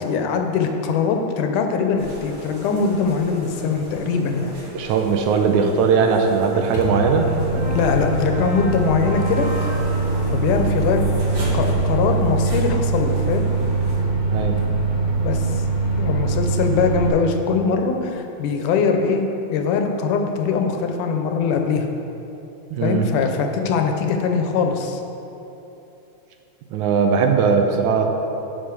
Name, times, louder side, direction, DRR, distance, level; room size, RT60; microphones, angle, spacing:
voice 1, 0.0-4.5 7.7-9.5 10.3-11.0 11.5-13.5 15.2-15.6 16.0-19.2 19.5-21.9 22.8-25.0, left 5 dB, 80° left, 4 dB, 2.3 m, -22 dB
sound 1, 2.0-14.0, equal, 55° right, 3.6 m, -35 dB
voice 2, 4.7-7.3 14.3-14.6 22.7-23.1 26.7-28.1, right 5 dB, 75° right, 4 dB, 2.0 m, -19 dB
Microwave oven, 6.7-17.1, right 3 dB, 45° left, 0.6 m, -22 dB
10.5 x 5.3 x 6.7 m, 3.0 s
omnidirectional pair, 3.6 m